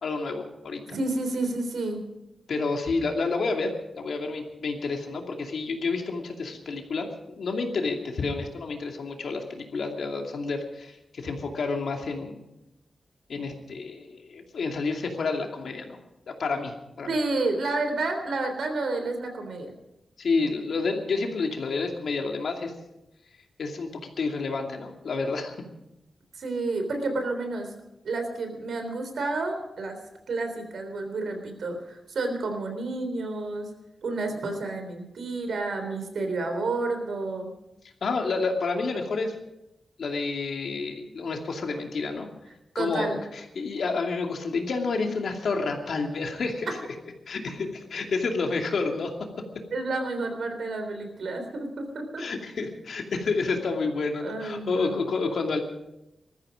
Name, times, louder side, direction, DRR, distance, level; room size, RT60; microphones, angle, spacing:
voice 1, 0.0-1.0 2.5-3.7 4.0-12.5 13.3-16.0 16.3-17.1 20.2-22.7 23.6-25.5 38.0-39.3 40.0-42.3 42.7-46.8 47.3-49.1 52.2-55.6, left 4 dB, 70° left, 2 dB, 2.6 m, -29 dB
voice 2, 0.9-2.0 17.1-19.7 26.3-27.7 28.0-30.0 30.3-33.7 34.0-37.5 42.8-43.2 46.7-46.8 49.7-52.2 54.2-55.0, right 2 dB, 75° right, 5 dB, 3.6 m, -30 dB
20.0 x 14.0 x 5.2 m, 0.90 s
wide cardioid pair, 130°, 0 cm